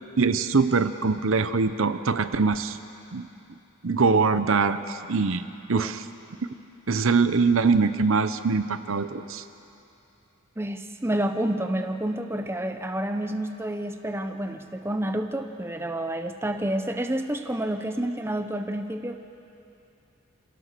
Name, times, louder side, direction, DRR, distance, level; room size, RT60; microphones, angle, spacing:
voice 1, 0.2-2.8 3.1-3.3 3.8-5.4 5.7-6.0 6.9-9.4, right 4 dB, 70° right, 11 dB, 0.7 m, -23 dB
voice 2, 10.6-19.2, right 1 dB, 10° right, 7 dB, 0.7 m, -29 dB
27.0 x 17.0 x 6.7 m, 2.7 s
head